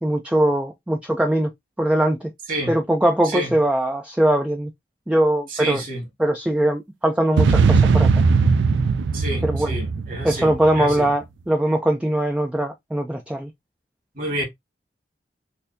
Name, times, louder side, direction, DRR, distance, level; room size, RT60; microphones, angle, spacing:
voice 1, 0.0-1.5 1.8-2.3 2.7-4.7 5.1-5.8 6.2-8.1 9.4-9.7 10.2-13.5, right 1 dB, 5° right, 0.3 m, -21 dB
voice 2, 5.5-6.1 9.1-11.1 14.2-14.4, right 1 dB, 55° right, 1.8 m, -29 dB
sound 1, 7.4-10.9, right 4 dB, 90° right, 0.4 m, -19 dB
4.2 x 2.6 x 2.6 m
head